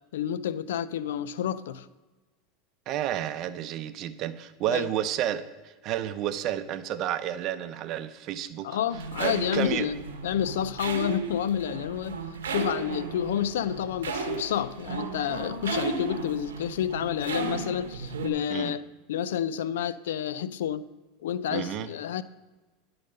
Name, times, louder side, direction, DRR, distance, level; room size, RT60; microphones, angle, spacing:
voice 1, 0.1-1.9 4.7-4.9 8.6-12.2 12.5-20.9 21.2-22.2, left 10 dB, 80° left, 0.4 m, -29 dB
voice 2, 2.9-8.8 9.2-9.9 18.5-18.8 21.5-21.9, right 11 dB, 50° right, 0.6 m, -31 dB
sound 1, 8.9-18.3, right 4 dB, 90° right, 0.9 m, -35 dB
10.0 x 3.9 x 6.5 m
hypercardioid pair, 95°, 0 cm